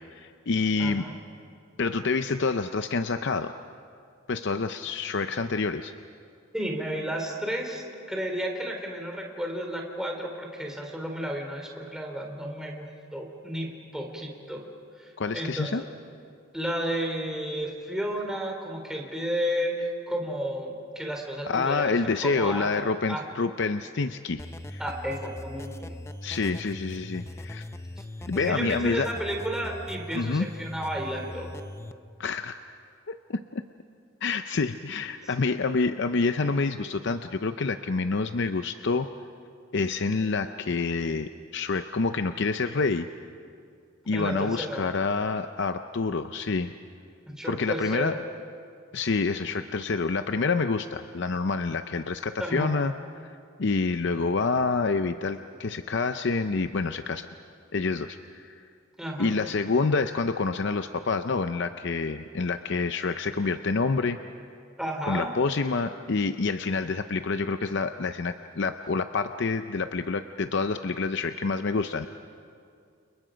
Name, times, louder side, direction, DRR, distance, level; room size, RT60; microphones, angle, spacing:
voice 1, 0.1-1.1 1.8-3.5 4.3-5.9 15.2-15.8 21.5-24.4 24.7-24.8 26.2-27.6 28.3-29.1 30.1-30.5 32.2-32.6 33.1-33.6 34.2-39.1 39.7-43.1 44.1-46.7 47.4-48.2 48.9-57.3 57.7-58.6 59.2-64.2 65.1-72.1, left 4 dB, 55° left, 9 dB, 0.6 m, -27 dB
voice 2, 0.8-1.1 6.5-12.9 13.1-14.6 15.0-15.9 16.5-22.7 23.1-23.2 24.8-26.0 28.4-31.5 44.1-44.9 47.3-48.2 52.4-52.8 59.0-59.3 64.8-65.3, equal, 5° right, 0 dB, 3.4 m, -32 dB
sound 1, 24.4-31.9, left 1 dB, 15° left, 0.6 m, -40 dB
30.0 x 29.0 x 5.1 m, 2.4 s
head